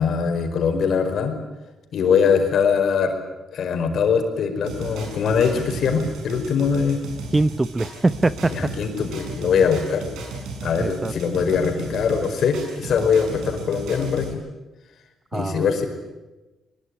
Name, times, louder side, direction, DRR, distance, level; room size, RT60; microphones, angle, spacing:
voice 1, 0.0-1.4 1.9-3.1 3.5-7.1 8.4-10.0 10.6-14.4 15.3-15.9, left 6 dB, 65° left, 6 dB, 4.9 m, -22 dB
sound 1, 4.6-14.3, right 3 dB, 85° right, 6.5 m, -35 dB
voice 2, 7.3-8.5 10.8-11.1 15.3-15.8, right 2 dB, 20° right, 15 dB, 0.7 m, -22 dB
22.0 x 21.5 x 9.7 m, 1.1 s
cardioid pair, 90°, 0 cm